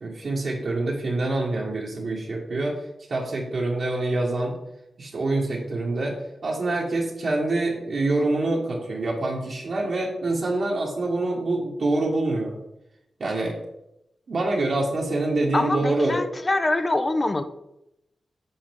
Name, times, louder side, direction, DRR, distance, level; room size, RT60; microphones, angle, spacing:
voice 1, 0.0-2.8 3.1-4.5 5.0-6.2 6.4-12.6 13.2-13.6 14.3-16.2, right 2 dB, 60° right, -4 dB, 1.7 m, -25 dB
voice 2, 15.5-17.4, left 2 dB, 30° left, 10 dB, 0.7 m, -24 dB
8.7 x 6.5 x 3.6 m, 0.85 s
wide cardioid pair, 105°, 0 cm